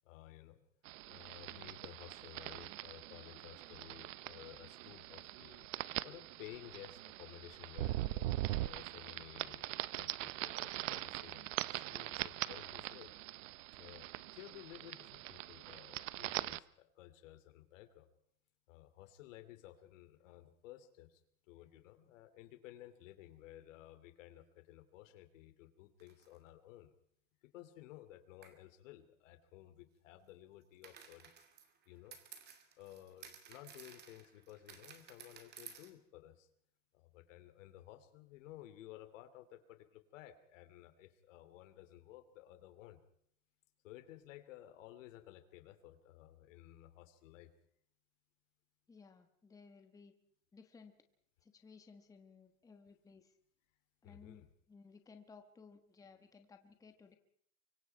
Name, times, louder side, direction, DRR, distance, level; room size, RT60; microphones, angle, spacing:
voice 1, 0.0-0.6 1.0-5.7 6.0-13.1 13.8-14.1 14.3-18.1 18.7-21.2 21.5-26.9 27.4-31.3 31.9-32.2 32.8-36.5 36.9-43.0 43.8-47.5 54.0-54.4, left 14 dB, 75° left, 11 dB, 2.8 m, -55 dB
sound 1, 0.8-16.6, right 17 dB, 80° right, 0.9 m, -42 dB
sound 2, 26.0-26.4 28.4-28.6 30.8-35.9, right 7 dB, 25° right, 2.5 m, -56 dB
voice 2, 48.9-50.1 50.5-51.0 51.4-53.3 54.0-57.2, left 5 dB, 10° left, 7 dB, 1.2 m, -59 dB
25.5 x 23.0 x 4.6 m, 0.67 s
supercardioid pair, 165°, 38 cm